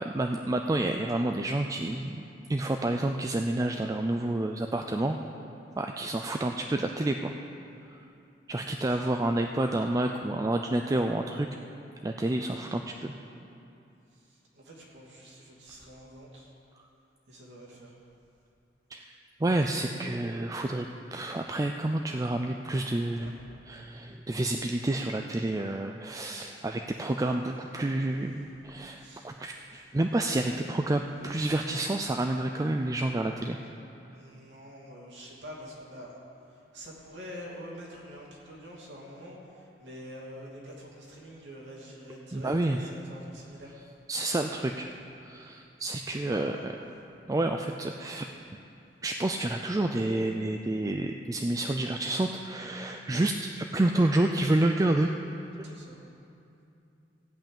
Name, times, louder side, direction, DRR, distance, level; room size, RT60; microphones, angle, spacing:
voice 1, 0.0-2.2 2.5-5.2 5.8-7.3 7.9-8.0 8.5-11.5 12.0-13.1 18.9-20.9 21.1-23.4 23.7-33.6 42.3-42.9 44.1-44.9 45.2-46.6 47.3-48.3 49.0-55.1 55.6-55.7, right 1 dB, 20° right, 4 dB, 0.4 m, -29 dB
voice 2, 14.1-16.5 17.3-18.0 23.2-23.3 28.4-28.5 29.0-29.3 34.1-36.2 36.5-43.7 46.1-46.7 55.6-56.0, equal, 75° right, -4 dB, 2.8 m, -46 dB
15.5 x 5.6 x 8.8 m, 2.7 s
head